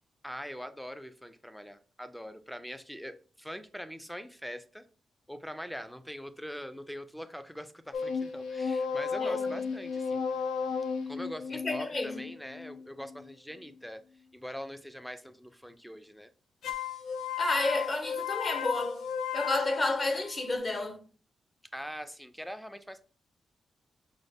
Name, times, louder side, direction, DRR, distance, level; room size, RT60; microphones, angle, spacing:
voice 1, 0.2-4.9 5.3-10.3 11.1-14.0 14.3-16.3 21.7-23.0, equal, ahead, 0.4 m, -43 dB
sound 1, 7.9-13.3 16.6-20.6, left 6 dB, 90° left, 0.4 m, -34 dB
voice 2, 11.5-12.2 17.4-19.0 19.3-21.0, left 2 dB, 35° left, 0.8 m, -31 dB
5.1 x 2.1 x 3.4 m
cardioid pair, 85°, 0 cm